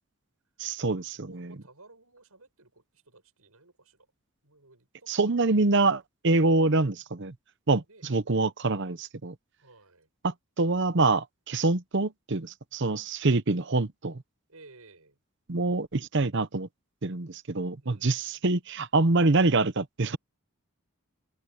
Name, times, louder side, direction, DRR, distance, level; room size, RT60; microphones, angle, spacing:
voice 1, 0.6-1.5 5.1-7.3 7.7-9.3 10.2-14.2 15.5-16.7 17.0-20.2, right 3 dB, 55° right, 0.9 m, -25 dB
voice 2, 1.2-4.1 4.4-6.0 7.9-8.1 9.6-10.1 14.5-15.2 17.8-18.4, right 3 dB, 80° right, 7.8 m, -56 dB
head